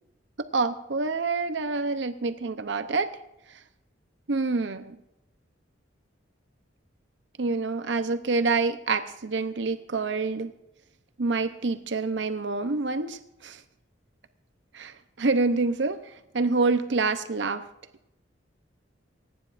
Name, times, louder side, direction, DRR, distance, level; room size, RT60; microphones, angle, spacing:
voice 1, 0.5-3.1 4.3-5.0 7.4-10.5 11.2-13.6 14.7-16.0 16.3-17.6, right 3 dB, 70° right, 10 dB, 0.7 m, -27 dB
28.5 x 9.9 x 2.5 m, 0.87 s
head